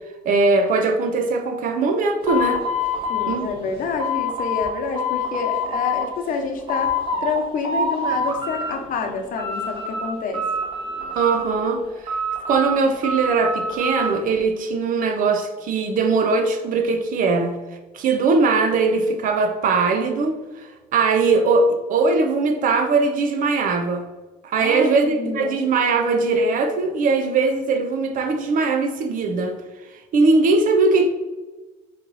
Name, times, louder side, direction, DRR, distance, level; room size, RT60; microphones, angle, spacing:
voice 1, 0.2-2.6 3.3-3.5 11.1-12.2 12.5-17.6 17.9-24.0 24.4-29.6 30.1-31.1, right 3 dB, 60° right, 0.7 m, -20 dB
sound 1, 2.2-4.7 5.0-6.0 6.4-7.4 7.6-8.7 9.1-10.1 10.3-11.6 12.1-14.1, left 2 dB, 35° right, 1.5 m, -26 dB
voice 2, 3.1-6.9 7.2-10.4 24.6-25.6, left 4 dB, 60° left, 0.9 m, -28 dB
4.3 x 3.2 x 3.9 m
supercardioid pair, 85°, 16 cm